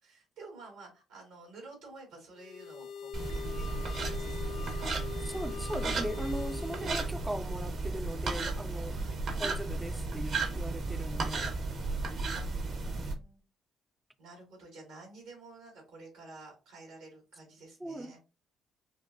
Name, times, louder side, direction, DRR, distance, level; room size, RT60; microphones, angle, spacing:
voice 1, 0.0-5.3 8.9-9.2 11.9-13.4 14.2-18.2, right 2 dB, 85° right, 2.3 m, -52 dB
sound 1, 2.4-7.2, left 7 dB, 70° left, 0.6 m, -43 dB
sound 2, 3.1-13.1, right 3 dB, 65° right, 1.2 m, -34 dB
voice 2, 5.2-9.0 9.4-11.6 17.8-18.2, right 1 dB, 10° right, 0.4 m, -39 dB
5.1 x 2.5 x 2.7 m
hypercardioid pair, 55°, 0 cm